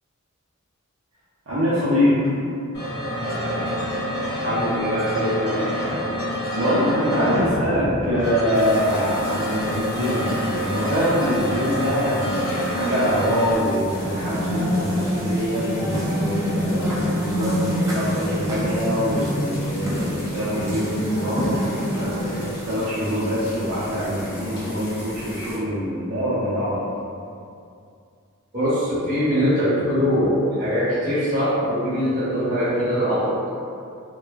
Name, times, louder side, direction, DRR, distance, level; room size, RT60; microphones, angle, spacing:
voice 1, 1.5-2.2 6.5-26.8, equal, 65° right, -11 dB, 0.6 m, -24 dB
sound 1, 2.7-13.5, equal, 90° left, 1.0 m, -27 dB
voice 2, 4.4-5.7 28.5-33.5, equal, 40° right, -11 dB, 1.1 m, -22 dB
sound 2, 8.5-25.6, equal, 55° left, 0.8 m, -39 dB
sound 3, 13.8-22.7, equal, 15° right, 0.4 m, -25 dB
2.8 x 2.2 x 2.3 m, 2.5 s
head